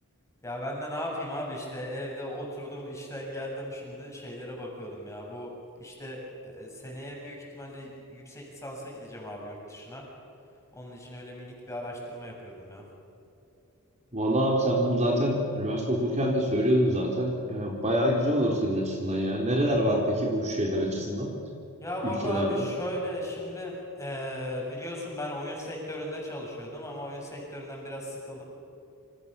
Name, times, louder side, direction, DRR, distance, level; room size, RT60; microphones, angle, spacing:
voice 1, 0.4-5.5 5.8-10.0 10.8-12.8 21.8-28.4, left 1 dB, 15° left, -2 dB, 7.5 m, -37 dB
voice 2, 14.1-21.3 22.0-22.7, equal, 30° right, -1 dB, 3.8 m, -26 dB
28.5 x 27.0 x 7.0 m, 2.7 s
head